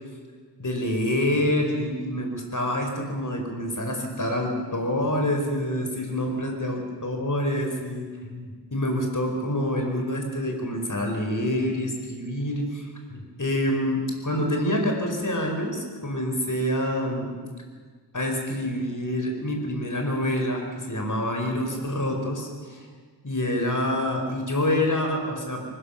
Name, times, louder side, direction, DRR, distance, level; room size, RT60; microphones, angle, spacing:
voice 1, 0.6-17.4 18.1-22.8 23.2-25.6, left 1 dB, 45° left, 2 dB, 5.1 m, -27 dB
24.0 x 19.5 x 7.3 m, 1.6 s
wide cardioid pair, 55°, 42 cm